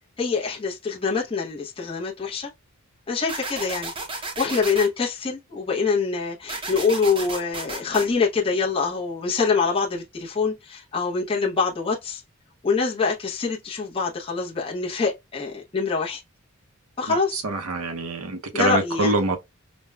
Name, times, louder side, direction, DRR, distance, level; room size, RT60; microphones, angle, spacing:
voice 1, 0.2-2.5 3.1-12.2 12.6-16.2 17.0-17.4 18.5-19.2, left 4 dB, 25° left, 0.7 m, -25 dB
sound 1, 3.3-4.9 6.5-8.1, right 3 dB, 25° right, 0.6 m, -33 dB
voice 2, 17.4-19.4, right 2 dB, 85° right, 0.7 m, -25 dB
5.2 x 2.1 x 2.2 m
head